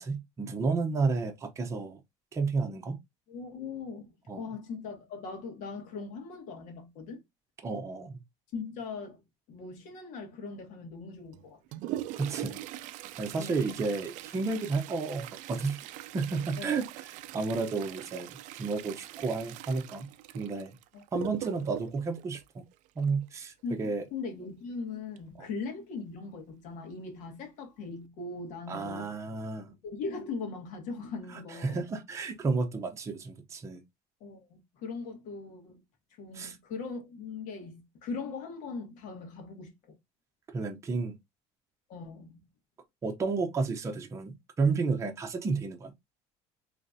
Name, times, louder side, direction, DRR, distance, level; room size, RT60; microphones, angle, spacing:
voice 1, 0.0-2.0 2.3-3.0 4.3-4.4 7.6-8.2 12.2-12.6 13.2-15.8 16.1-17.1 17.3-18.3 18.6-20.1 20.3-20.8 21.1-22.6 23.0-24.1 28.7-29.7 31.5-33.8 36.3-36.6 40.5-41.2 43.0-45.9, right 4 dB, 20° right, 0.6 m, -31 dB
voice 2, 3.3-7.2 8.5-9.2 9.5-11.8 13.4-13.7 16.6-16.8 20.9-21.0 23.6-29.1 29.7-31.9 34.2-35.8 36.2-39.7 41.9-42.3, left 4 dB, 70° left, 1.6 m, -40 dB
Toilet flush, 11.3-23.3 25.2-25.3 25.6-25.7 26.5-26.6 27.2-27.5 27.9-28.1, right 14 dB, 70° right, 0.4 m, -42 dB
3.8 x 3.2 x 2.6 m
cardioid pair, 135°, 13 cm